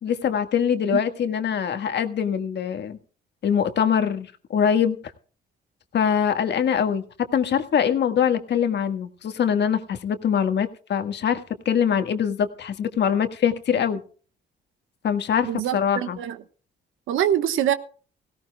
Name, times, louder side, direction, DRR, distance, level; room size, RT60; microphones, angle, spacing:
voice 1, 0.0-3.0 3.4-4.3 4.5-5.0 5.9-7.0 7.3-11.4 11.6-14.0 15.0-16.2, left 8 dB, 60° left, 1.7 m, -23 dB
voice 2, 15.4-16.4 17.1-17.7, right 10 dB, 85° right, 1.2 m, -24 dB
18.0 x 17.0 x 2.3 m
cardioid pair, 90°, 20 cm